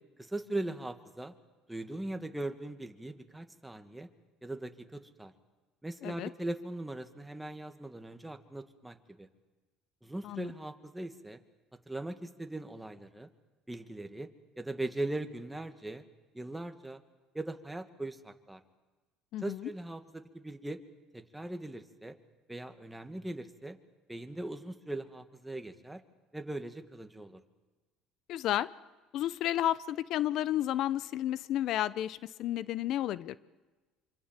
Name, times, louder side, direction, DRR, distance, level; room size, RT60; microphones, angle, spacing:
voice 1, 0.2-1.3 1.7-4.1 4.4-5.3 5.8-9.3 10.0-11.4 11.9-13.3 13.7-14.3 14.6-16.0 16.3-17.0 17.3-18.6 19.4-20.8 21.1-22.2 22.5-23.8 24.1-26.0 26.3-27.4, right 2 dB, 5° right, 7 dB, 2.0 m, -40 dB
voice 2, 19.3-19.7 28.3-28.7 29.1-33.4, left 12 dB, 60° left, 18 dB, 0.8 m, -32 dB
26.0 x 25.5 x 7.5 m, 1.2 s
supercardioid pair, 105°, 0 cm